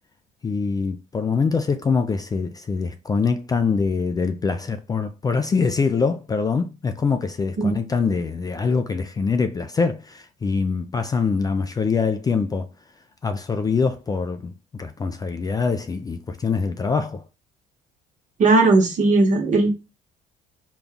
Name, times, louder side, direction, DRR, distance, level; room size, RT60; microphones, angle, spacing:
voice 1, 0.4-12.7 13.2-17.2, left 5 dB, 20° left, 0.3 m, -24 dB
voice 2, 18.4-19.7, right 3 dB, 50° right, 1.1 m, -17 dB
3.9 x 2.3 x 3.5 m
cardioid pair, 110°, 17 cm